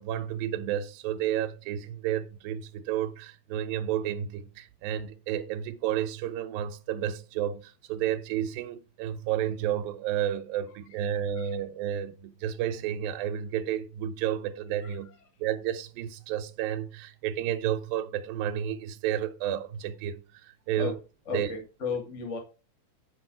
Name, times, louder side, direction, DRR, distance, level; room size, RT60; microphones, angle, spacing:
voice 1, 0.0-21.0 21.3-21.5, right 10 dB, 85° right, 2.6 m, -31 dB
voice 2, 10.9-11.5 14.8-15.0 20.8-20.9 21.2-22.4, left 5 dB, 25° left, 1.7 m, -35 dB
10.0 x 5.9 x 4.6 m
omnidirectional pair, 4.1 m